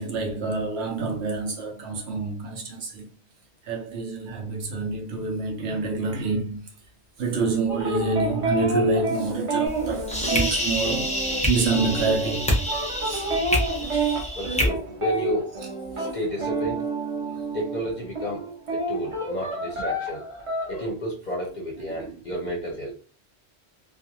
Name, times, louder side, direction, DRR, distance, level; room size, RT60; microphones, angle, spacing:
voice 1, 0.0-3.0 3.7-6.6 7.2-11.1 11.5-12.4 13.0-13.3 13.9-14.2 21.8-22.1, right 3 dB, 75° right, 0.9 m, -27 dB
sound 1, 7.7-17.9 18.2-20.9, right 2 dB, 35° right, 0.6 m, -29 dB
sound 2, 9.7-14.7, left 1 dB, 10° left, 0.4 m, -27 dB
voice 2, 14.4-15.5 15.9-16.8 17.5-18.4 18.7-20.2 20.7-22.9, equal, 50° left, 0.6 m, -31 dB
2.4 x 2.3 x 2.8 m
omnidirectional pair, 1.1 m